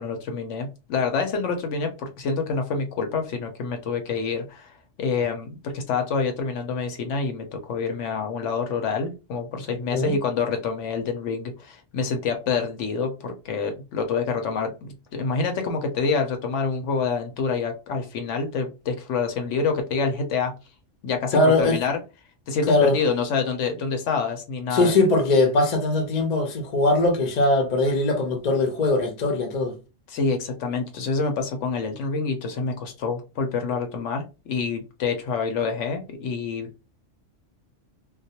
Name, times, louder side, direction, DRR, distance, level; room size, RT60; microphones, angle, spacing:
voice 1, 0.0-20.5 21.0-22.0 22.5-24.9 30.1-36.7, left 5 dB, 75° left, 0.9 m, -27 dB
voice 2, 21.3-21.8 22.7-23.0 24.7-29.8, left 2 dB, 45° left, 0.6 m, -21 dB
2.3 x 2.0 x 2.7 m
omnidirectional pair, 1.3 m